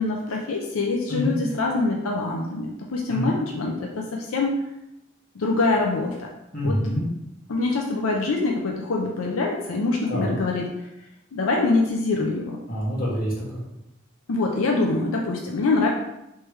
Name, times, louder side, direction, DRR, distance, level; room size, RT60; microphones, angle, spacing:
voice 1, 0.0-4.6 5.3-6.3 6.6-6.8 7.5-10.7 11.3-12.6 14.3-15.9, left 3 dB, 90° left, 0 dB, 0.6 m, -24 dB
voice 2, 6.5-7.0 10.1-10.3 12.7-13.7, equal, 40° left, -6 dB, 1.6 m, -26 dB
3.3 x 3.2 x 4.7 m, 0.88 s
head